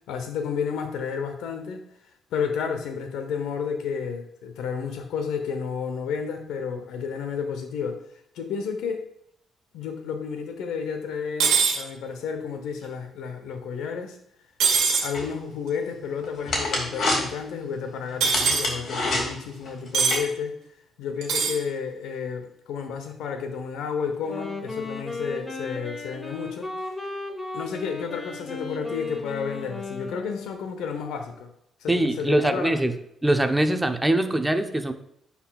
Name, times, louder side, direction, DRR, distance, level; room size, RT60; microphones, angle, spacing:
voice 1, 0.1-1.8 2.3-8.0 8.3-9.1 9.7-14.2 15.0-20.6 21.0-26.7 27.5-31.5 31.8-32.9, left 6 dB, 85° left, 6 dB, 0.8 m, -31 dB
sound 1, 11.4-11.8 14.6-15.1 18.2-18.7 19.9-20.2 21.2-21.6, right 6 dB, 85° right, 1.5 m, -21 dB
sound 2, 15.1-20.2, left 2 dB, 60° left, 2.3 m, -29 dB
Wind instrument woodwind instrument, 24.1-30.7, left 3 dB, 10° left, 1.3 m, -35 dB
voice 2, 31.9-32.9 33.2-34.9, right 1 dB, 10° right, 7 dB, 0.7 m, -22 dB
10.0 x 4.2 x 2.3 m, 0.71 s
cardioid pair, 90°, 0 cm